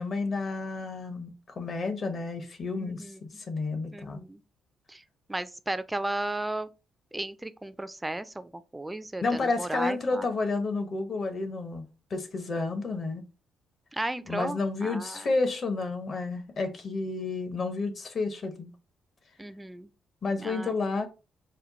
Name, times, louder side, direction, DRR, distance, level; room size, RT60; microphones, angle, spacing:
voice 1, 0.0-4.2 9.2-13.3 14.3-18.7 20.2-21.1, left 3 dB, 45° left, 0.9 m, -31 dB
voice 2, 2.7-3.2 3.9-4.4 4.9-5.0 5.3-6.7 7.1-10.3 13.9-15.3 19.4-19.9 20.4-20.7, right 2 dB, 10° right, 0.4 m, -35 dB
4.3 x 2.2 x 3.9 m
cardioid pair, 90°, 0 cm